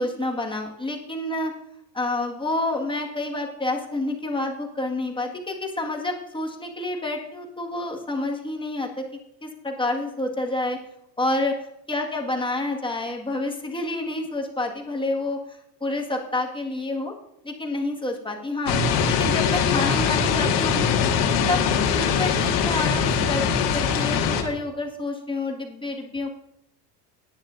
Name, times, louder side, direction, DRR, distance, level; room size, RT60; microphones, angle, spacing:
voice 1, 0.0-1.5 1.9-9.1 9.4-10.8 11.2-11.6 11.9-17.1 17.4-18.8 19.1-20.9 21.5-23.4 23.7-26.3, left 2 dB, 10° left, 0 dB, 1.9 m, -28 dB
sound 1, 18.7-24.4, left 6 dB, 75° left, 2.0 m, -22 dB
16.5 x 10.5 x 2.7 m, 0.79 s
supercardioid pair, 100°, 49 cm